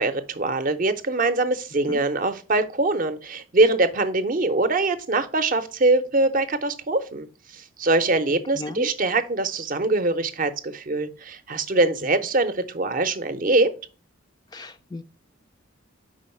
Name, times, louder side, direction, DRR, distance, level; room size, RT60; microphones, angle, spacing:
voice 1, 0.0-13.7, right 2 dB, 40° right, 0.6 m, -23 dB
voice 2, 8.6-8.9 14.5-15.0, left 2 dB, 20° left, 0.3 m, -35 dB
5.1 x 3.8 x 5.4 m
head